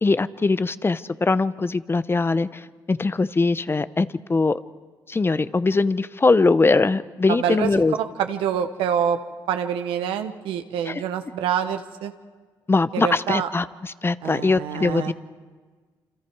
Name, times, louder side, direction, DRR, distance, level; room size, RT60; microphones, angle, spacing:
voice 1, 0.0-4.6 5.1-8.0 10.9-11.0 12.7-15.1, left 3 dB, 25° left, 15 dB, 0.7 m, -21 dB
voice 2, 7.4-7.7 8.0-9.2 9.5-12.1 12.9-13.5 14.2-15.1, right 8 dB, 85° right, 8 dB, 1.2 m, -26 dB
28.0 x 26.5 x 4.7 m, 1.4 s
supercardioid pair, 60°, 9 cm